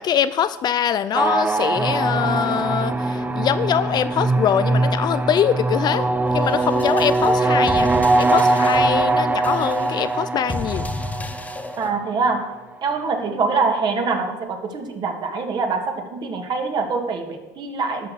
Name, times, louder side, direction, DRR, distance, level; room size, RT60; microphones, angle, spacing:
voice 1, 0.0-6.0 6.3-7.9 8.2-10.9, left 9 dB, 40° left, 14 dB, 0.5 m, -23 dB
sound 1, 1.1-12.3, right 2 dB, 15° right, 0.8 m, -21 dB
sound 2, 6.3-11.9, left 3 dB, 15° left, 0.9 m, -33 dB
voice 2, 11.8-12.5 12.8-18.1, right 4 dB, 45° right, 4 dB, 2.1 m, -24 dB
12.5 x 6.1 x 6.9 m, 1.2 s
hypercardioid pair, 80°, 11 cm